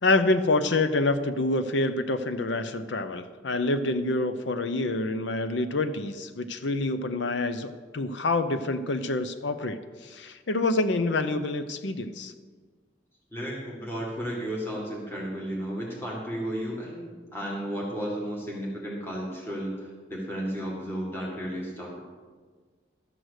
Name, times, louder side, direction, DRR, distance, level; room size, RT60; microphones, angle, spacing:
voice 1, 0.0-12.3, left 2 dB, 70° left, 10 dB, 0.6 m, -27 dB
voice 2, 13.3-22.0, equal, 10° left, -3 dB, 1.8 m, -33 dB
12.0 x 7.9 x 6.4 m, 1.5 s
head